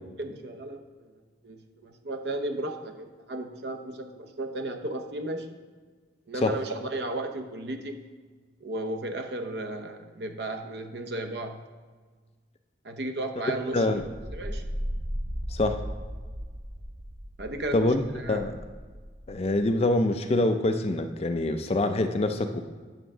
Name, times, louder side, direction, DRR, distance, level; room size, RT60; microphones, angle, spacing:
voice 1, 0.2-1.1 1.4-5.5 6.3-8.0 8.6-11.6 12.8-14.1 14.3-14.6 17.4-18.5, right 2 dB, 60° right, 5 dB, 0.8 m, -34 dB
sound 1, 13.9-19.9, equal, 25° right, 0.7 m, -37 dB
voice 2, 19.3-22.6, left 2 dB, 35° left, 7 dB, 0.4 m, -25 dB
8.9 x 3.6 x 6.0 m, 1.5 s
head